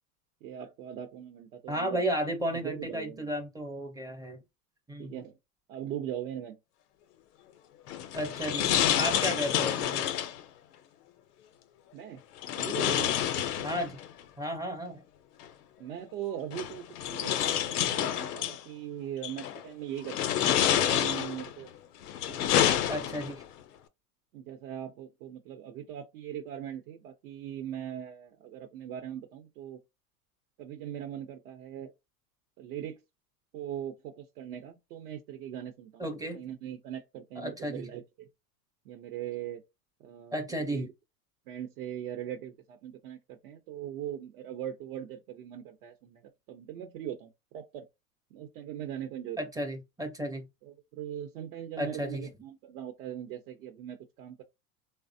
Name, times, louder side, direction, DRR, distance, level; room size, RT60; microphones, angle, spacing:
voice 1, 0.4-2.0 2.5-3.3 5.0-5.3 5.7-6.6 11.9-12.2 12.6-13.1 15.8-16.8 17.1-21.7 22.3-23.2 24.3-29.8 30.6-31.9 32.6-33.0 33.5-36.1 36.3-38.3 38.9-39.6 40.0-40.4 40.7-40.9 41.5-46.2 46.5-47.9 48.3-49.4 50.6-54.4, right 10 dB, 70° right, 0.7 m, -40 dB
voice 2, 1.7-4.4 4.9-5.1 8.1-8.7 8.9-10.1 13.6-14.0 14.4-15.0 22.9-23.4 36.0-36.4 37.4-37.9 40.3-40.9 49.4-50.5 51.8-52.3, equal, 10° right, 0.5 m, -33 dB
sound 1, 7.9-10.4 12.4-14.1 15.4-15.5 16.5-18.6 19.2-19.6 20.0-21.5 22.0-23.4, left 11 dB, 85° left, 0.6 m, -28 dB
3.3 x 2.0 x 2.6 m
hypercardioid pair, 115°, 45 cm